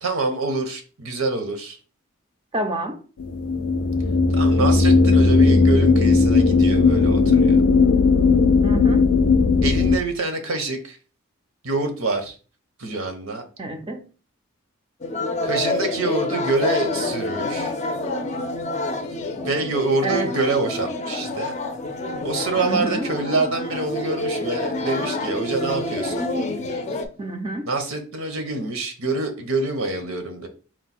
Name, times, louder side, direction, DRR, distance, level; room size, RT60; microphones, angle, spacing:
voice 1, 0.0-1.8 4.3-7.6 9.6-11.0 11.6-12.3 12.8-13.5 15.4-17.8 19.3-21.6 22.2-26.3 27.7-30.5, right 3 dB, 75° right, 6 dB, 0.9 m, -26 dB
voice 2, 2.5-3.0 8.6-9.0 13.6-14.0 20.0-20.3 22.6-23.1 27.2-27.7, right 2 dB, 25° right, 5 dB, 0.5 m, -27 dB
sound 1, 3.2-10.0, left 4 dB, 85° left, 0.4 m, -17 dB
sound 2, 15.0-27.1, left 2 dB, 35° left, 0.5 m, -27 dB
4.5 x 2.2 x 4.2 m, 0.37 s
head